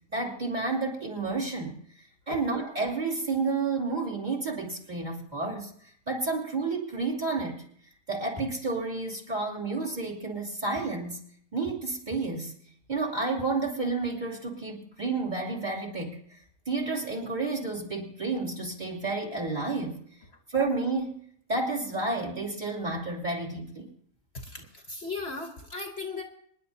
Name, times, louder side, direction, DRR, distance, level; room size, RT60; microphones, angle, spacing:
voice 1, 0.1-1.8 2.3-7.7 8.1-11.2 11.5-12.5 12.9-16.4 16.7-20.0 20.5-21.2 21.5-23.9, right 3 dB, 30° right, 0 dB, 2.9 m, -31 dB
voice 2, 24.4-26.2, left 3 dB, 50° left, 4 dB, 1.3 m, -37 dB
26.5 x 10.5 x 2.7 m, 0.63 s
omnidirectional pair, 1.5 m